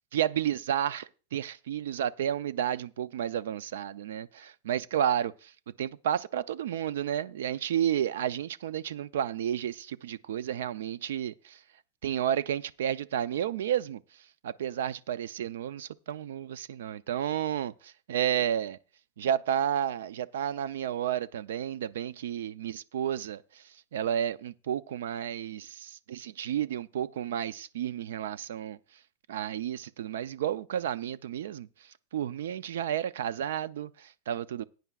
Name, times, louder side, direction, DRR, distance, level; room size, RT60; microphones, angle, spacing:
voice 1, 0.1-5.3 5.8-11.6 12.0-14.0 14.4-18.8 19.2-23.6 23.9-28.8 29.3-31.7 32.1-34.6, right 10 dB, 85° right, 0.4 m, -31 dB
16.5 x 9.2 x 2.4 m
supercardioid pair, 180°, 0 cm